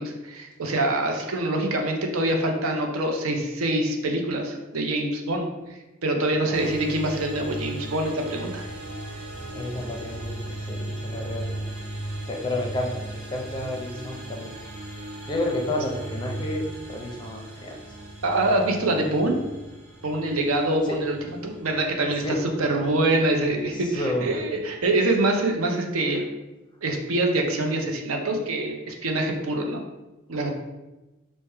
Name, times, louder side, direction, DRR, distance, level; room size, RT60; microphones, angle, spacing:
voice 1, 0.0-8.6 18.2-19.4 20.0-21.2 21.4-26.2 26.8-29.8 30.3-30.5, right 2 dB, 80° right, 3 dB, 0.6 m, -25 dB
sound 1, 6.5-25.6, right 1 dB, 55° right, 1.2 m, -38 dB
voice 2, 9.5-10.4 10.7-11.7 12.3-13.0 13.3-14.5 15.3-17.8 20.9-21.0 22.2-22.4 23.7-24.4, left 1 dB, 20° left, 1 dB, 0.5 m, -30 dB
3.4 x 2.1 x 4.3 m, 1.1 s
head